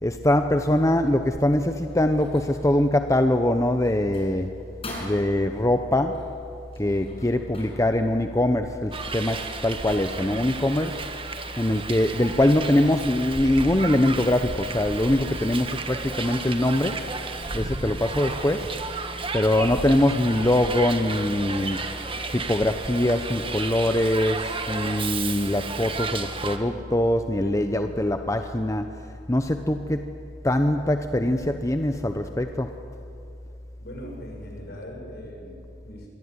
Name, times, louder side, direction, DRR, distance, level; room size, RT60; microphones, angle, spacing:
voice 1, 0.0-4.5 5.0-6.3 6.8-11.0 11.6-17.0 17.5-18.8 19.3-21.8 22.3-30.1 30.4-32.7, left 1 dB, 15° left, 7 dB, 0.8 m, -23 dB
sound 1, 0.6-11.8, left 1 dB, 30° left, 7.7 m, -47 dB
Hiss, 8.9-26.6, right 4 dB, 30° right, 1.7 m, -33 dB
voice 2, 33.8-36.1, equal, 55° left, 1 dB, 7.5 m, -41 dB
27.0 x 23.0 x 9.7 m, 2.7 s
head